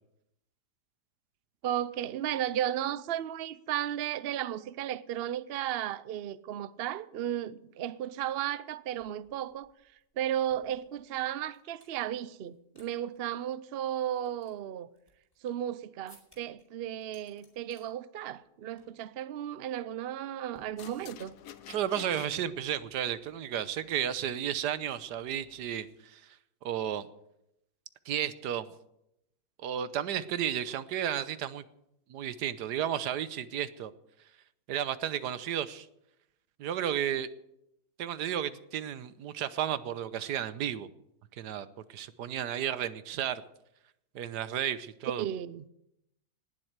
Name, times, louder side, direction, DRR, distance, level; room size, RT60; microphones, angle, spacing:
voice 1, 1.6-9.7 10.2-14.9 15.4-21.3 45.2-45.7, right 11 dB, 60° right, 0.6 m, -34 dB
sound 1, 8.7-8.8 9.0-12.0 12.4-12.9 13.1-13.2 13.8-15.7 16.1-16.6 17.0-17.9 18.2-18.5 18.8-19.0 19.3-19.6 20.5-21.3, left 1 dB, 15° left, 4.6 m, -62 dB
sound 2, 20.8-25.8, left 10 dB, 65° left, 1.2 m, -53 dB
voice 2, 21.7-26.2 26.6-27.1 28.1-28.7 29.6-31.6 32.1-33.9 34.7-35.9 36.6-37.3 38.0-40.9 41.4-43.4 44.1-45.2, right 10 dB, 85° right, 1.4 m, -33 dB
19.0 x 7.6 x 8.0 m
omnidirectional pair, 1.7 m